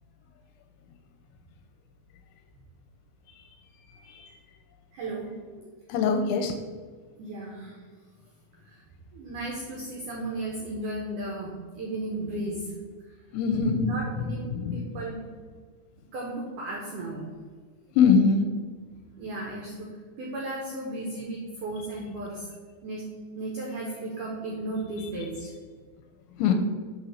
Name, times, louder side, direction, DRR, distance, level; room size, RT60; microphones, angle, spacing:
voice 1, 4.9-5.3 7.2-7.8 8.7-8.8 9.1-11.5 11.8-12.6 13.8-14.5 14.7-15.2 16.1-17.3 19.2-19.9 20.2-22.4 22.8-23.0 23.4-25.5, right 2 dB, 85° right, -2 dB, 1.8 m, -34 dB
voice 2, 5.9-6.5 13.3-13.8 14.5-14.9 18.0-18.4 26.4-26.5, left 6 dB, 85° left, 5 dB, 2.9 m, -22 dB
8.2 x 3.6 x 6.3 m, 1.5 s
omnidirectional pair, 5.4 m